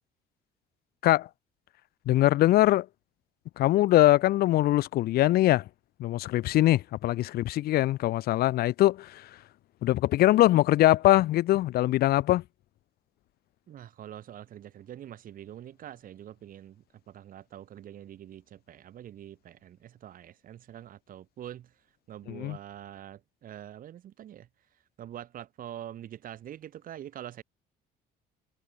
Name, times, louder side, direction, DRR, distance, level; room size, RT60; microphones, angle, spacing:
voice 1, 2.1-2.9 3.6-5.6 6.0-9.3 9.8-12.4 22.3-22.6, left 15 dB, 65° left, 0.6 m, -22 dB
voice 2, 13.7-21.7 22.1-24.5 25.0-27.4, right 11 dB, 55° right, 1.5 m, -45 dB
cardioid pair, 110°, 17 cm